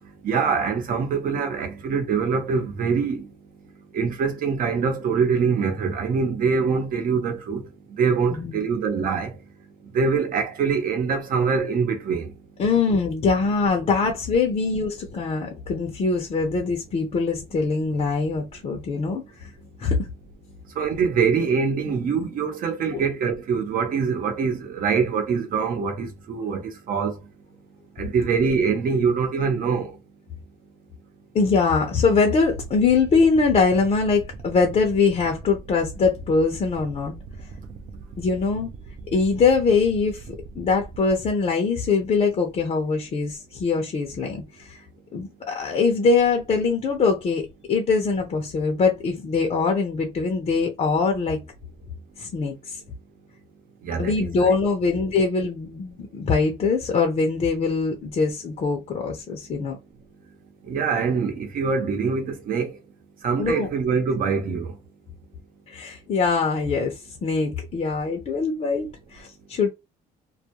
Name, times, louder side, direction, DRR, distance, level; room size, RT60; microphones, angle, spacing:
voice 1, 0.0-3.3 3.9-9.4 9.8-12.3 20.7-27.2 28.0-30.0 37.9-38.2 53.8-54.5 60.6-62.8 63.2-64.8, right 5 dB, 55° right, 0.8 m, -24 dB
voice 2, 8.3-8.6 12.6-19.5 19.8-20.1 22.9-23.0 31.3-37.2 38.2-38.7 39.1-40.2 40.6-44.8 45.1-51.4 52.2-52.8 54.0-59.8 63.4-63.7 65.7-69.7, left 4 dB, 40° left, 0.6 m, -23 dB
sound 1, 32.4-41.2, right 4 dB, 40° right, 0.5 m, -41 dB
2.3 x 2.2 x 2.8 m
cardioid pair, 110°, 17 cm